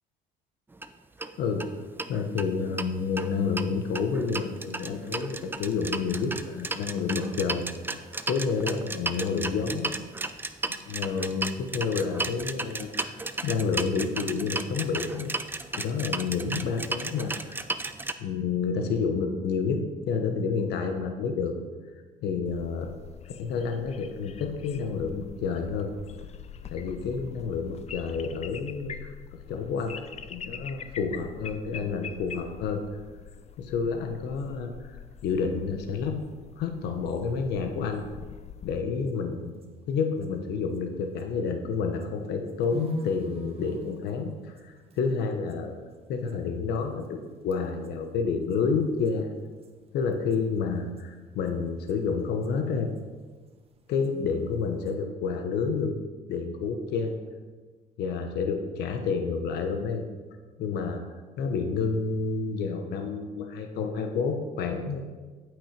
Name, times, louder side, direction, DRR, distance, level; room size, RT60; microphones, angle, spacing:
sound 1, 0.7-0.9 1.2-1.3 1.6-1.7 2.0-2.9 3.2-18.1, right 2 dB, 10° right, 0.5 m, -34 dB
voice 1, 2.1-7.7 8.3-9.9 10.9-13.2 13.4-15.4 15.8-17.6 18.2-21.6 22.2-22.9 23.4-25.9 26.7-29.1 29.5-30.0 30.3-32.8 33.6-36.2 36.6-38.0 38.6-45.7 46.1-49.3 49.9-52.9 53.9-55.9 56.3-57.2 58.0-60.0 60.6-61.0 61.4-65.0, left 5 dB, 75° left, 5 dB, 1.1 m, -29 dB
sound 2, 22.5-38.8, left 8 dB, 40° left, 0.6 m, -44 dB
sound 3, 39.0-41.5 41.8-47.2 47.5-47.9 48.2-48.3 48.5-51.1 51.3-54.9, right 4 dB, 35° right, 1.4 m, -45 dB
9.1 x 8.5 x 5.2 m, 1.4 s
cardioid pair, 110°, 17 cm